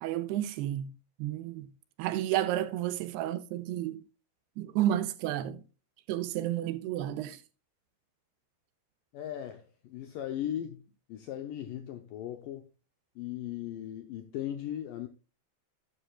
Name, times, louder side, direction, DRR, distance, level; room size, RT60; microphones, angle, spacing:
voice 1, 0.0-0.9 1.2-1.7 2.0-4.0 4.6-5.6 6.1-7.4, right 12 dB, 80° right, 2.6 m, -31 dB
voice 2, 9.1-10.8 11.1-12.7 13.2-15.1, left 11 dB, 80° left, 2.0 m, -38 dB
11.5 x 9.8 x 2.3 m
omnidirectional pair, 4.9 m